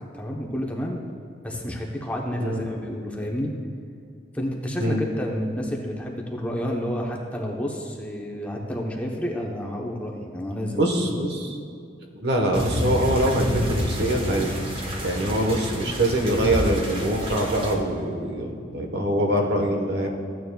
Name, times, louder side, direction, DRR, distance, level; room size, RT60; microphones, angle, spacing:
voice 1, 0.1-1.0 1.4-3.5 4.3-10.9 18.5-18.6, equal, 10° left, -1 dB, 0.9 m, -30 dB
voice 2, 10.7-11.6 12.1-14.5 15.0-20.1, right 1 dB, 65° right, 2 dB, 1.2 m, -24 dB
sound 1, 12.5-17.8, equal, 30° right, 1.2 m, -29 dB
14.5 x 9.2 x 2.3 m, 2.5 s
head